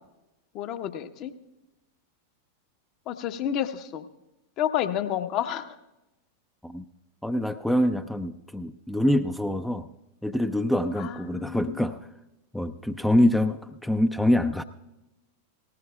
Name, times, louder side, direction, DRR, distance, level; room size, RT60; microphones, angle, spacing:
voice 1, 0.5-1.3 3.1-4.0 4.6-5.7 11.0-11.8, left 10 dB, 35° left, 9 dB, 1.0 m, -30 dB
voice 2, 7.2-9.9 10.2-12.0 12.5-14.6, left 1 dB, 5° left, 8 dB, 0.5 m, -25 dB
18.5 x 18.5 x 2.3 m, 0.97 s
figure-of-eight pair, 90°, 0 cm